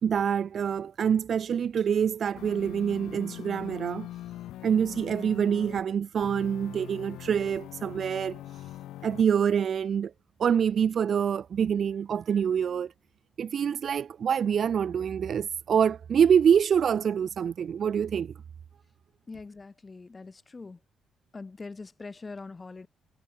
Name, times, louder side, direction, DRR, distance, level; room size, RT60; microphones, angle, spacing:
voice 1, 0.0-4.1 4.6-8.4 9.0-10.1 10.4-12.9 13.4-18.3, right 8 dB, 55° right, 0.8 m, -26 dB
sound 1, 2.4-5.8 6.2-9.2, left 14 dB, 85° left, 1.9 m, -42 dB
voice 2, 19.3-20.8 21.3-22.9, left 3 dB, 25° left, 1.3 m, -43 dB
cardioid pair, 90°, 0 cm